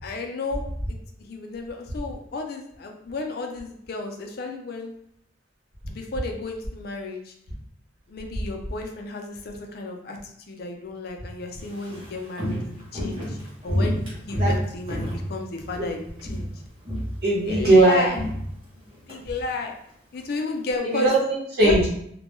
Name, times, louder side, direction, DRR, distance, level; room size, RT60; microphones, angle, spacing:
voice 1, 0.0-4.9 5.9-7.3 8.1-13.4 13.6-16.5 17.4-18.1 18.8-19.7 20.1-21.1 21.6-21.8, left 3 dB, 55° left, 3 dB, 0.4 m, -33 dB
Walk footsteps, 11.6-15.9 16.2-16.6 16.8-19.2 19.5-19.6, equal, 25° right, 0.8 m, -29 dB
voice 2, 17.2-18.1 20.8-21.9, right 2 dB, 55° right, -6 dB, 0.9 m, -19 dB
2.2 x 2.1 x 3.0 m, 0.71 s
head